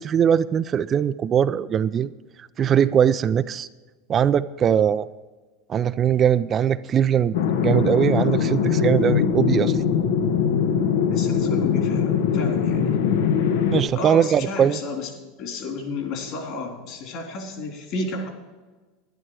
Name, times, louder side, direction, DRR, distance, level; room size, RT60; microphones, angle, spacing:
voice 1, 0.0-2.1 2.6-3.7 4.1-5.1 5.7-7.4 7.6-9.8 13.7-14.8, right 8 dB, 30° right, 13 dB, 0.4 m, -20 dB
sound 1, 7.3-13.8, left 7 dB, 85° left, 1.0 m, -21 dB
voice 2, 11.1-13.0 14.0-15.1 15.4-18.3, left 3 dB, 55° left, 2 dB, 3.4 m, -32 dB
11.5 x 11.0 x 4.8 m, 1.3 s
supercardioid pair, 125°, 0 cm